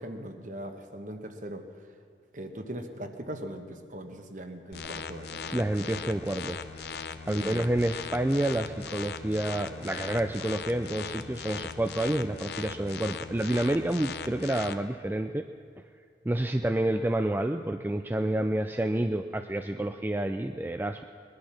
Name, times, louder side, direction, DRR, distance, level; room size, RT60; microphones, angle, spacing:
voice 1, 0.0-1.6 2.3-5.6 7.3-7.7 19.8-19.9, right 1 dB, 45° right, 6 dB, 1.1 m, -40 dB
sound 1, 4.7-14.7, left 6 dB, 65° left, 0.7 m, -39 dB
voice 2, 5.5-6.6 7.3-15.5 16.2-21.0, right 1 dB, 10° right, 7 dB, 0.3 m, -29 dB
20.5 x 11.5 x 5.9 m, 2.2 s
head